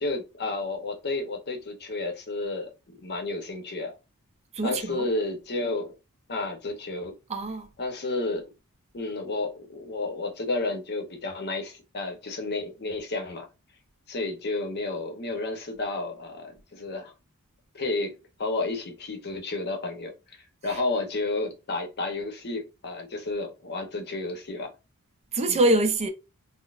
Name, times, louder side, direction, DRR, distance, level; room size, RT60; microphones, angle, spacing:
voice 1, 0.0-4.0 4.6-5.9 6.3-7.2 7.8-8.5 8.9-13.5 14.1-17.1 17.7-20.4 20.6-24.7 25.5-25.6, left 2 dB, 50° left, 0.8 m, -31 dB
voice 2, 4.5-5.1 7.3-7.7 20.6-20.8 25.3-26.1, right 2 dB, 30° right, 0.4 m, -24 dB
3.9 x 2.0 x 2.3 m
head